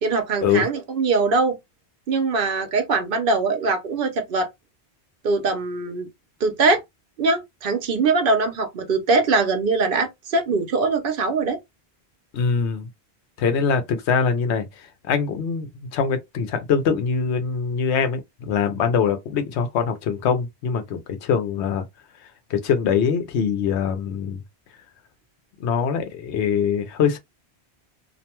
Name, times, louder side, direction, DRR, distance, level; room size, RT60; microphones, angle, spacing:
voice 1, 0.0-1.6 2.1-4.5 5.2-6.1 6.4-6.8 7.2-11.6, right 3 dB, 60° right, 0.8 m, -22 dB
voice 2, 12.3-12.9 13.4-21.8 22.5-24.4 25.6-27.2, left 6 dB, 85° left, 0.9 m, -23 dB
2.6 x 2.1 x 2.9 m
omnidirectional pair, 1.1 m